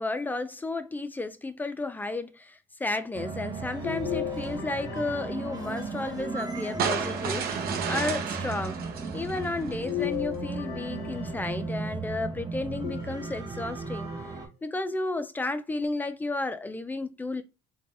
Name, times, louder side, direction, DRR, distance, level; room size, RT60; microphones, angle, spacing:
voice 1, 0.0-8.8 9.1-14.1 14.6-17.4, left 2 dB, 10° left, 0.4 m, -33 dB
sound 1, 3.1-14.5, right 4 dB, 25° right, 1.0 m, -36 dB
sound 2, 3.8-6.1 6.8-7.8 9.8-11.9 12.8-13.7 14.3-14.4 15.8-15.9, left 16 dB, 80° left, 0.5 m, -37 dB
sound 3, 6.8-10.0, right 7 dB, 65° right, 0.7 m, -32 dB
3.8 x 2.3 x 2.7 m
cardioid pair, 110°, 17 cm